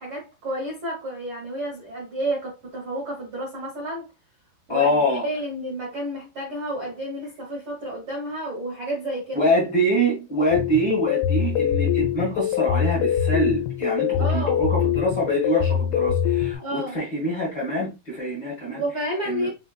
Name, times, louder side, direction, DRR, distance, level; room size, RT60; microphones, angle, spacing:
voice 1, 0.0-4.1 4.7-4.9 5.2-9.4 14.2-14.6 16.6-17.0 18.7-19.5, right 1 dB, 75° right, 1.2 m, -30 dB
voice 2, 4.7-5.2 9.3-18.8 19.2-19.5, equal, 45° left, 1.4 m, -25 dB
sound 1, 10.5-16.6, left 9 dB, 80° left, 2.6 m, -23 dB
5.6 x 3.3 x 2.3 m
omnidirectional pair, 4.6 m